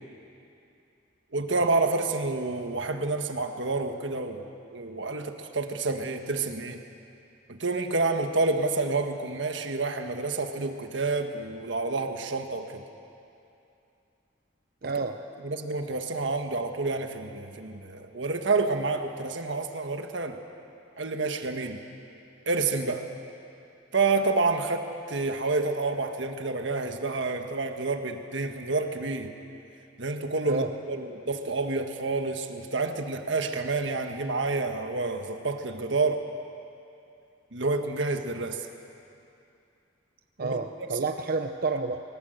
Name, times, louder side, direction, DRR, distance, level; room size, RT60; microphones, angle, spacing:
voice 1, 1.3-6.8 7.5-12.8 14.8-14.9 15.4-20.4 21.0-21.8 22.5-23.1 23.9-29.3 30.0-36.2 37.5-38.7 40.4-40.6, right 3 dB, 70° right, 6 dB, 1.5 m, -29 dB
voice 2, 14.8-15.2 30.5-30.7 40.4-42.0, right 4 dB, 50° right, 6 dB, 0.7 m, -29 dB
22.5 x 19.0 x 8.0 m, 2.7 s
head